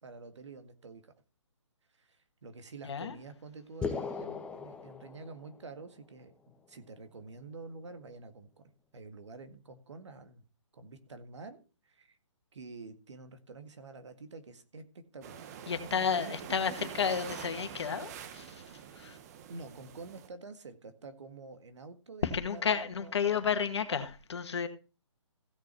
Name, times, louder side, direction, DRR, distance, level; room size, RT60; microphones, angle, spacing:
voice 1, 0.0-1.1 2.0-8.6 8.9-10.4 10.7-12.2 12.5-15.6 16.2-16.3 16.7-17.0 18.8-19.2 19.5-23.5, right 3 dB, 70° right, 1.9 m, -48 dB
sound 1, 3.8-5.8, left 5 dB, 5° left, 0.9 m, -38 dB
sound 2, 15.2-20.3, right 8 dB, 30° right, 1.2 m, -46 dB
voice 2, 15.7-18.6 19.0-19.2 22.2-24.7, left 6 dB, 60° left, 1.9 m, -32 dB
15.5 x 6.6 x 4.5 m
figure-of-eight pair, 145°, 16 cm